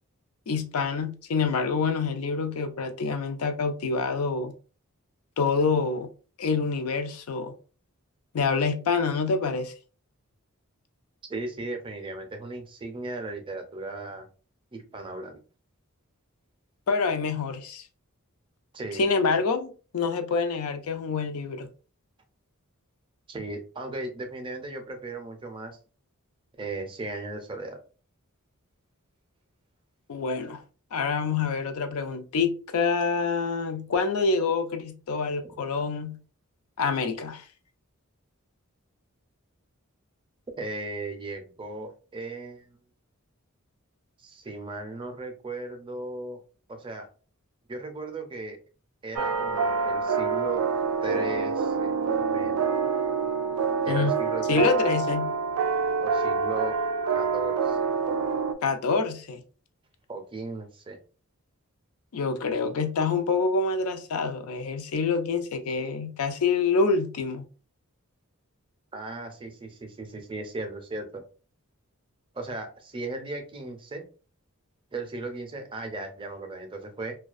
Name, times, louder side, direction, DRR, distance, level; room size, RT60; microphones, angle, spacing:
voice 1, 0.5-4.5 5.4-6.1 6.4-7.5 8.3-9.7 16.9-17.8 18.9-21.7 30.1-30.6 30.9-36.2 36.8-37.4 53.9-54.1 54.5-55.3 58.6-59.4 62.1-67.4, left 4 dB, 80° left, 0.4 m, -26 dB
voice 2, 11.3-14.3 14.7-15.4 18.7-19.0 23.3-25.8 26.6-27.8 40.6-42.8 44.2-46.4 46.7-47.1 47.7-48.6 49.0-50.6 51.0-52.6 53.8-55.0 56.0-56.8 57.1-57.9 60.1-61.0 68.9-71.2 72.3-74.0 74.9-77.1, right 2 dB, 25° right, 0.4 m, -36 dB
sound 1, 49.2-58.5, right 5 dB, 90° right, 0.3 m, -26 dB
2.3 x 2.2 x 2.4 m
head